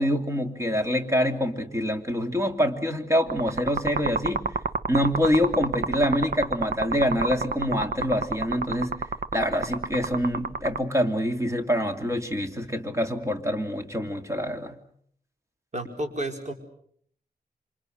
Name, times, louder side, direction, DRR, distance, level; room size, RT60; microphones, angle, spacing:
voice 1, 0.0-4.4 4.9-9.0 9.3-14.8, equal, 20° right, 6 dB, 2.8 m, -26 dB
sound 1, 3.3-10.8, right 4 dB, 65° right, 1.3 m, -29 dB
voice 2, 15.7-16.5, right 1 dB, 50° right, 4 dB, 5.1 m, -31 dB
28.5 x 26.0 x 6.5 m, 0.64 s
wide cardioid pair, 100°, 16 cm